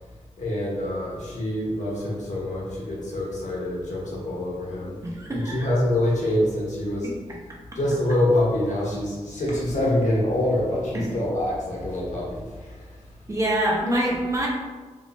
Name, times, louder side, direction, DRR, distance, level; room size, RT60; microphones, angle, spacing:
voice 1, 0.4-7.1 7.7-12.9, left 1 dB, 80° left, -5 dB, 1.3 m, -26 dB
voice 2, 5.0-5.7 10.9-11.1 13.3-14.5, right 1 dB, 25° right, -3 dB, 0.9 m, -25 dB
4.4 x 3.5 x 2.5 m, 1.3 s
wide cardioid pair, 120°, 12 cm